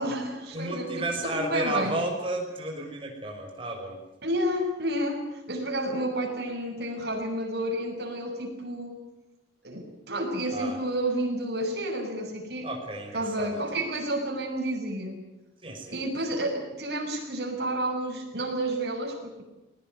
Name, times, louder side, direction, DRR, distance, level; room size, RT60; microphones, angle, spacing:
voice 1, 0.0-2.0 4.2-9.0 9.6-12.7 13.1-15.2 15.9-19.4, right 1 dB, 60° right, 2 dB, 6.7 m, -30 dB
voice 2, 0.5-4.0 10.5-10.8 12.6-13.8 15.6-16.0, right 2 dB, 30° right, 2 dB, 6.0 m, -32 dB
21.0 x 19.0 x 9.6 m, 0.96 s
head